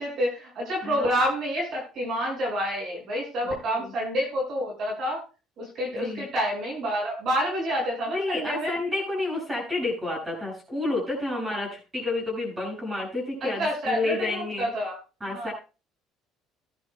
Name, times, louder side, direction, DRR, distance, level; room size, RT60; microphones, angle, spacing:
voice 1, 0.0-5.2 5.6-8.8 13.4-15.0 15.3-15.5, equal, 45° right, -2 dB, 6.1 m, -28 dB
voice 2, 5.9-6.2 8.1-14.7 15.2-15.5, left 2 dB, 15° right, 0 dB, 7.3 m, -30 dB
17.5 x 10.5 x 2.3 m, 0.32 s
cardioid pair, 170°, 0 cm